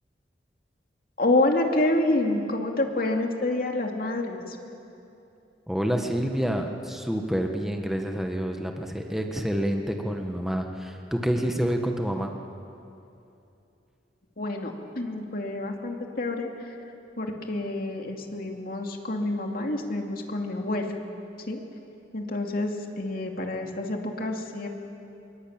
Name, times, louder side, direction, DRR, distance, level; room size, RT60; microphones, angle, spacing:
voice 1, 1.2-4.6 14.4-16.8 17.2-21.0 21.5-21.6 22.1-24.7, left 2 dB, 55° left, 2 dB, 2.5 m, -28 dB
voice 2, 5.7-12.4, equal, ahead, 3 dB, 1.4 m, -28 dB
26.0 x 22.5 x 8.9 m, 2.7 s
head